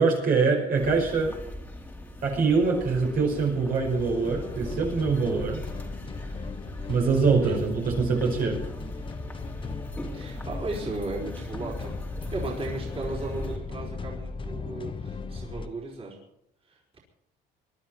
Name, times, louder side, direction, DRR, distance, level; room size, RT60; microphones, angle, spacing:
voice 1, 0.0-1.4 2.2-5.6 6.9-8.6, right 4 dB, 60° right, 0 dB, 5.4 m, -24 dB
sound 1, 0.8-13.6, left 1 dB, 10° left, 2.5 m, -41 dB
sound 2, 4.0-15.7, left 4 dB, 30° left, 1.2 m, -37 dB
voice 2, 10.1-11.9 12.3-16.2 16.6-17.0, right 2 dB, 35° right, -2 dB, 4.9 m, -35 dB
22.5 x 12.0 x 4.5 m, 0.78 s
cardioid pair, 110°, 17 cm